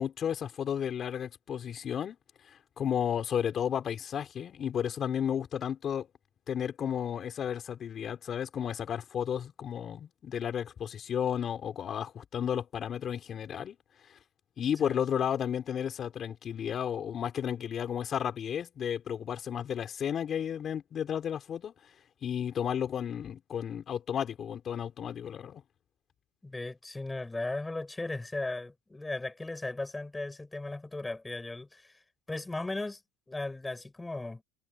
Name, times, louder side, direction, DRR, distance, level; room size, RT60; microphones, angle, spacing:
voice 1, 0.0-2.2 2.8-6.1 6.5-13.7 14.6-21.7 22.2-25.6, left 8 dB, 30° left, 5.0 m, -33 dB
voice 2, 26.4-31.9 32.3-33.0 33.3-34.4, left 2 dB, 10° left, 5.0 m, -36 dB
supercardioid pair, 120°, 0 cm